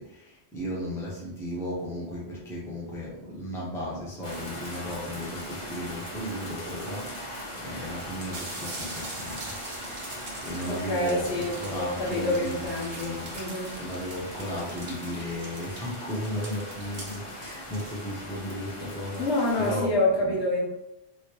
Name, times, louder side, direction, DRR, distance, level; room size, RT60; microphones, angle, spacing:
voice 1, 0.0-9.6 10.1-13.4 13.8-19.3 19.6-20.3, equal, 5° left, -6 dB, 0.8 m, -35 dB
sound 1, 4.2-19.8, equal, 30° left, 0.9 m, -40 dB
sound 2, 7.0-7.1 7.8-7.9 8.1-18.1, right 2 dB, 65° right, 1.1 m, -43 dB
voice 2, 10.7-13.8 19.2-20.7, left 1 dB, 85° left, -4 dB, 1.3 m, -27 dB
3.3 x 2.8 x 3.0 m, 0.89 s
omnidirectional pair, 1.1 m